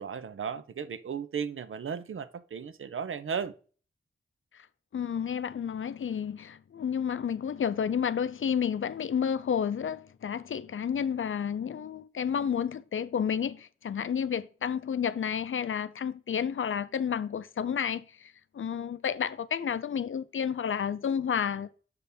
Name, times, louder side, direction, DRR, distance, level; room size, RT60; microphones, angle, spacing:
voice 1, 0.0-3.5, right 6 dB, 75° right, 0.6 m, -35 dB
voice 2, 4.9-21.7, left 7 dB, 75° left, 0.5 m, -31 dB
6.7 x 4.2 x 3.4 m
cardioid pair, 45°, 21 cm